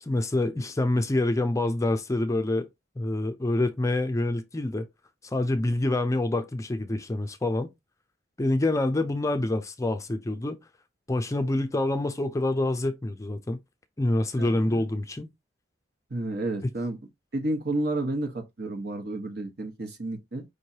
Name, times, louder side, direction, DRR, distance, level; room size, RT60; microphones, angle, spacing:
voice 1, 0.0-2.7 3.0-4.9 5.2-7.7 8.4-10.6 11.1-13.6 14.0-15.3 16.6-16.7, left 2 dB, 15° left, 0.4 m, -26 dB
voice 2, 14.4-14.8 16.1-17.0 17.3-20.4, right 2 dB, 60° right, 1.2 m, -31 dB
5.2 x 3.1 x 2.8 m
head